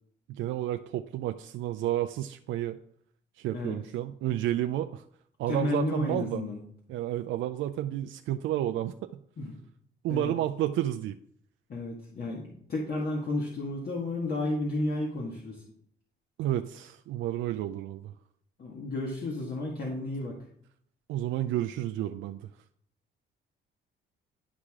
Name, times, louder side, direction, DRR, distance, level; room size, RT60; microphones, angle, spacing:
voice 1, 0.3-2.8 3.4-5.0 5.4-6.4 6.9-9.0 10.0-11.2 16.4-18.1 21.1-22.5, right 12 dB, 85° right, 8 dB, 0.4 m, -31 dB
voice 2, 5.5-6.6 9.4-9.5 10.1-10.3 11.7-15.6 18.6-20.4, left 2 dB, 50° left, -2 dB, 1.8 m, -32 dB
11.5 x 4.8 x 3.7 m, 0.66 s
cardioid pair, 90°, 20 cm